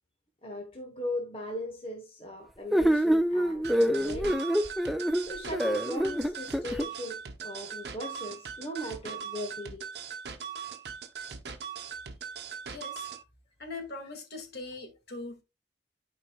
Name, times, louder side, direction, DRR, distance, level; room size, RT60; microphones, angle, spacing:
voice 1, 0.4-4.5 5.2-10.0, left 1 dB, 30° left, 1.0 m, -38 dB
sound 1, 2.7-6.9, equal, ahead, 0.4 m, -26 dB
sound 2, 3.6-13.2, right 7 dB, 65° right, 0.9 m, -40 dB
voice 2, 12.7-13.1 13.6-15.4, left 3 dB, 60° left, 1.9 m, -41 dB
11.5 x 4.7 x 2.2 m
head